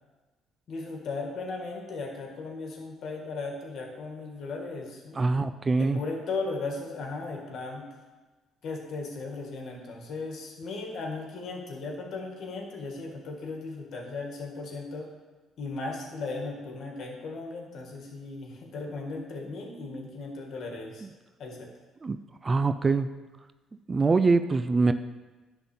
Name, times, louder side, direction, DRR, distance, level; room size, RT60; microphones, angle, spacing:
voice 1, 0.7-5.5 5.8-7.8 8.6-15.1 15.6-21.1 21.4-21.7, left 3 dB, 60° left, 2 dB, 2.0 m, -36 dB
voice 2, 5.2-6.0 22.0-22.2 22.4-23.1 23.9-24.9, right 3 dB, 30° right, 11 dB, 0.5 m, -23 dB
10.0 x 4.0 x 7.2 m, 1.3 s
hypercardioid pair, 55°, 0 cm